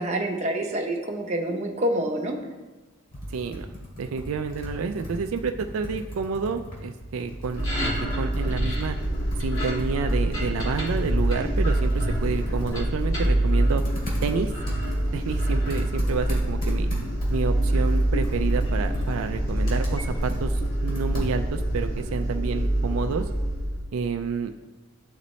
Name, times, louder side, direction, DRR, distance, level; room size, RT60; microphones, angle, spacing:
voice 1, 0.0-2.3, right 1 dB, 35° right, 1 dB, 0.8 m, -27 dB
Computer keyboard, 3.1-21.6, equal, 45° left, 2.3 m, -39 dB
voice 2, 3.3-3.7 4.0-9.0 9.4-13.8 14.2-14.5 15.1-16.9 17.3-23.2 23.9-24.5, right 5 dB, 85° right, 7 dB, 0.4 m, -29 dB
sound 1, 7.5-23.8, right 1 dB, 70° left, 2.1 m, -25 dB
11.5 x 4.1 x 3.1 m, 1.2 s
head